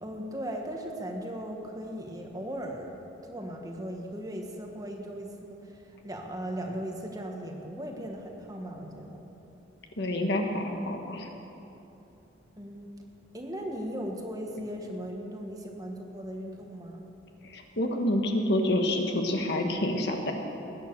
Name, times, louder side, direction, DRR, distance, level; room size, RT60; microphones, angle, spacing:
voice 1, 0.0-9.2 12.6-12.9 13.3-17.1, equal, 20° right, 1 dB, 1.5 m, -38 dB
voice 2, 10.0-11.3 17.5-20.3, left 1 dB, 65° left, 3 dB, 1.6 m, -28 dB
20.5 x 9.1 x 6.7 m, 3.0 s
head